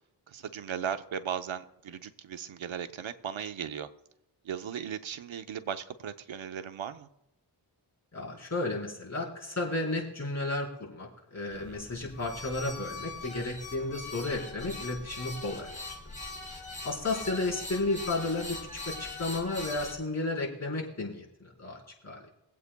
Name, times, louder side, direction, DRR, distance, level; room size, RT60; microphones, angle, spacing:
voice 1, 0.3-3.9 4.4-7.1, right 8 dB, 65° right, 9 dB, 0.9 m, -37 dB
voice 2, 8.1-15.8 16.8-21.8 22.0-22.2, left 2 dB, 30° left, -4 dB, 4.4 m, -33 dB
sound 1, 11.5-19.9, left 2 dB, 15° left, 4.7 m, -41 dB
23.5 x 8.3 x 2.3 m, 0.87 s
cardioid pair, 50°, 50 cm